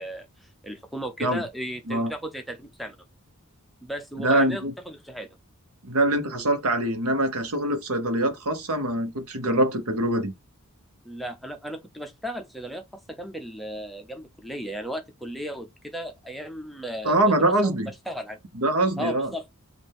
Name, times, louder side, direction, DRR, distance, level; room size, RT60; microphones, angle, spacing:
voice 1, 0.0-3.0 3.8-5.3 11.0-17.7 18.1-18.4 19.0-19.4, equal, ahead, 0.7 m, -35 dB
voice 2, 4.2-4.7 5.8-10.3 17.0-17.9 18.5-19.3, right 1 dB, 80° right, 1.1 m, -24 dB
5.5 x 2.6 x 3.5 m
head